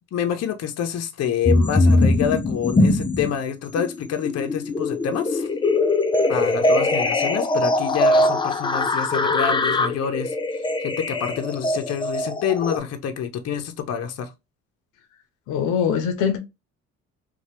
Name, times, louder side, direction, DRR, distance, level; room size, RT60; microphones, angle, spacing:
voice 1, 0.1-5.5 6.3-10.3 10.8-14.3, left 8 dB, 55° left, 0.7 m, -27 dB
sound 1, 1.5-3.4 3.8-12.8, left 2 dB, 15° left, 0.4 m, -21 dB
voice 2, 15.5-16.4, left 7 dB, 90° left, 0.7 m, -22 dB
2.7 x 2.3 x 3.0 m
cardioid pair, 85°, 30 cm